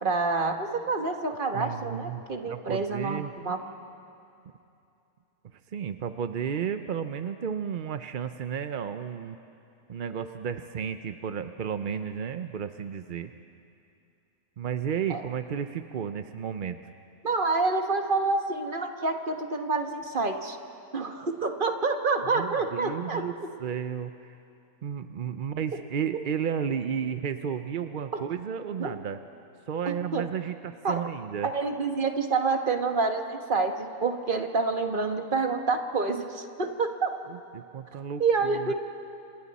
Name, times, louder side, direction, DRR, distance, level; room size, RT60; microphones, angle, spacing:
voice 1, 0.0-3.6 15.1-15.2 17.2-20.6 20.9-23.2 28.8-28.9 30.1-30.2 30.8-30.9 31.4-37.1 38.2-38.7, right 4 dB, 35° right, 4 dB, 1.4 m, -27 dB
voice 2, 1.5-3.3 5.7-9.4 9.9-13.3 14.6-16.8 22.3-24.3 24.8-29.2 29.7-31.5 37.3-38.7, right 8 dB, 55° right, 9 dB, 0.6 m, -33 dB
30.0 x 27.0 x 4.2 m, 2.6 s
omnidirectional pair, 1.5 m